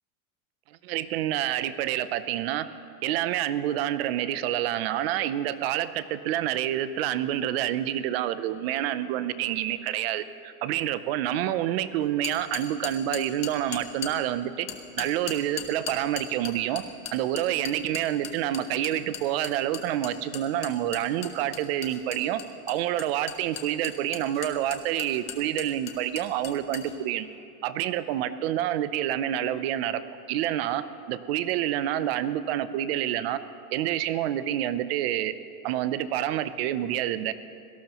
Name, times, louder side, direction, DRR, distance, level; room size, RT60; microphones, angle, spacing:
voice 1, 0.8-2.7 3.0-14.7 15.0-16.8 17.1-22.4 22.7-27.3 27.6-30.0 30.3-33.4 33.7-35.3 35.6-37.3, right 12 dB, 45° right, 13 dB, 0.5 m, -28 dB
sound 1, 12.2-14.1 14.7-26.9, left 10 dB, 15° left, 0.4 m, -37 dB
25.0 x 17.5 x 3.0 m, 2.5 s
supercardioid pair, 175°, 45 cm